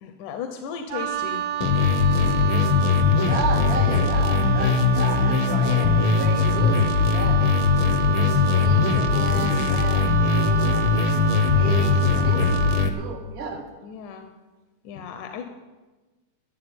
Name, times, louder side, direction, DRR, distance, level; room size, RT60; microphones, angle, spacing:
voice 1, 0.0-1.4 13.8-14.3 14.8-15.4, left 7 dB, 85° left, 6 dB, 2.4 m, -35 dB
Wind instrument woodwind instrument, 0.9-13.0, right 10 dB, 75° right, 1.9 m, -30 dB
sound 1, 1.6-12.9, left 5 dB, 65° left, 1.4 m, -20 dB
voice 2, 3.2-7.5 7.9-10.9 11.5-13.6, right 5 dB, 30° right, 3 dB, 1.2 m, -33 dB
14.0 x 7.6 x 9.0 m, 1.2 s
omnidirectional pair, 3.5 m